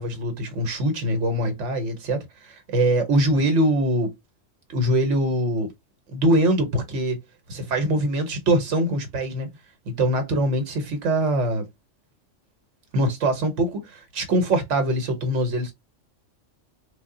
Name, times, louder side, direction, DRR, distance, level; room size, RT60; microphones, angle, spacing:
voice 1, 0.0-4.1 4.7-5.7 6.1-7.2 7.5-9.5 9.9-11.6 12.9-15.7, right 1 dB, 70° right, 1.2 m, -23 dB
3.6 x 2.1 x 3.6 m
omnidirectional pair, 1.3 m